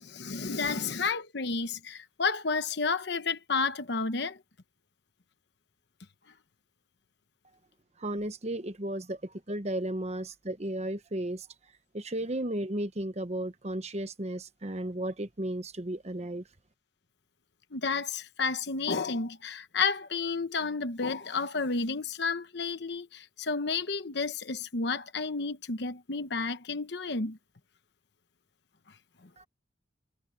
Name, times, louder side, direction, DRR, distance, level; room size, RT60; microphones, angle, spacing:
voice 1, 0.0-4.4 17.7-27.4, left 4 dB, 60° left, 1.0 m, -31 dB
voice 2, 8.0-9.2 9.5-11.4 11.9-16.4 29.4-29.5, right 1 dB, 35° right, 1.1 m, -34 dB
head